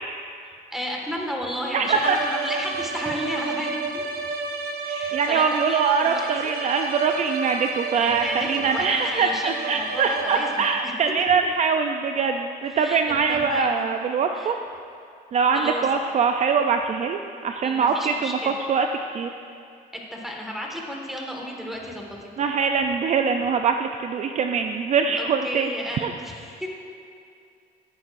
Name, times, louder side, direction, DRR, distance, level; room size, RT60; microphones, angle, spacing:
voice 1, 0.5-4.1 4.8-6.5 8.0-10.9 12.7-13.0 13.3-13.9 14.3-14.6 15.5-15.9 17.6-18.5 20.1-22.2 25.2-26.7, equal, ahead, -1 dB, 1.7 m, -33 dB
voice 2, 1.7-2.2 5.1-14.6 15.3-18.9 19.1-19.3 22.4-25.7 26.0-26.1, right 5 dB, 45° right, 5 dB, 0.4 m, -23 dB
sound 1, 1.8-11.0, right 4 dB, 70° right, 0.9 m, -31 dB
15.0 x 9.4 x 2.6 m, 2.4 s
cardioid pair, 110°, 17 cm